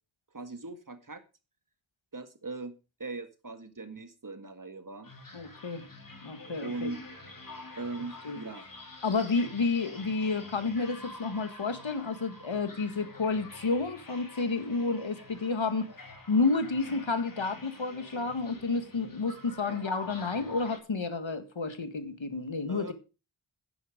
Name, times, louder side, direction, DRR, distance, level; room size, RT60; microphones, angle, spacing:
voice 1, 0.3-1.2 2.1-2.7 3.0-5.1 6.6-7.0 7.8-8.7 19.7-19.8 22.7-22.9, right 3 dB, 45° right, 1.9 m, -39 dB
sound 1, 5.0-20.8, left 3 dB, 45° left, 3.3 m, -47 dB
voice 2, 5.3-5.8 6.2-6.9 8.3-8.4 9.0-15.9 16.3-22.9, left 4 dB, 80° left, 1.8 m, -30 dB
10.5 x 9.9 x 5.0 m
wide cardioid pair, 45°, 45 cm